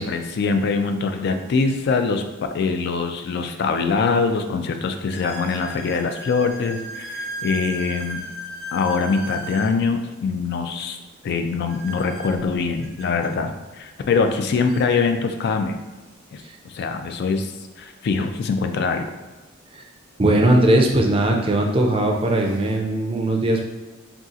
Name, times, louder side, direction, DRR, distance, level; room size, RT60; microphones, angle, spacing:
voice 1, 0.0-2.2 2.5-8.2 8.7-11.0 11.2-15.7 16.3-16.4 16.7-17.5 17.8-19.1, left 4 dB, 55° left, 7 dB, 0.3 m, -23 dB
sound 1, 5.1-9.8 11.7-13.3 14.3-14.4 14.7-14.9 15.7-15.8 18.0-18.1 20.1-20.2 21.0-21.3 21.8-22.8, right 1 dB, 80° right, 0.6 m, -36 dB
voice 2, 20.2-23.7, right 1 dB, 25° right, 1 dB, 0.4 m, -19 dB
2.6 x 2.4 x 3.7 m, 1.2 s
head